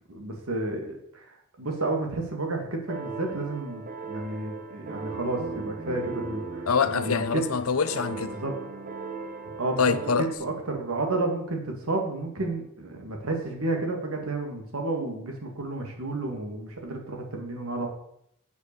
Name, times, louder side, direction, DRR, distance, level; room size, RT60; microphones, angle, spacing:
voice 1, 0.1-1.2 1.6-7.4 8.3-8.5 9.6-9.8 10.2-17.9, right 2 dB, 85° right, 2.1 m, -31 dB
sound 1, 2.9-10.3, right 3 dB, 40° right, 1.0 m, -37 dB
voice 2, 6.7-8.4 9.8-10.3, left 5 dB, 80° left, 0.7 m, -25 dB
8.2 x 5.8 x 6.8 m
head